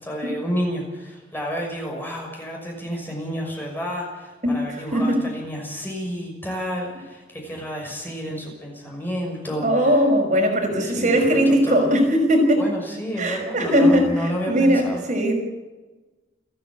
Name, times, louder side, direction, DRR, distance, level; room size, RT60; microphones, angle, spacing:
voice 1, 0.0-10.0 10.7-11.9 12.6-15.0, equal, 10° left, -1 dB, 6.0 m, -30 dB
voice 2, 4.4-5.2 9.6-12.7 13.2-15.3, equal, 45° right, 1 dB, 5.7 m, -19 dB
30.0 x 10.5 x 8.8 m, 1.2 s
head